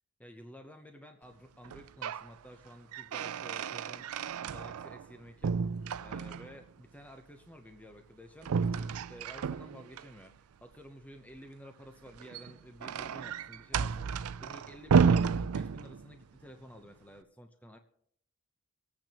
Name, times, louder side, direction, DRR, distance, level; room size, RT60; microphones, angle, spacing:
voice 1, 0.2-5.6 6.0-10.3 10.6-17.8, equal, 5° left, 5 dB, 0.8 m, -52 dB
sound 1, 1.6-2.3 2.7-5.1 5.4-6.6 8.4-10.1 12.1-16.2, right 6 dB, 85° right, 0.4 m, -31 dB
25.5 x 9.0 x 3.0 m, 0.67 s
head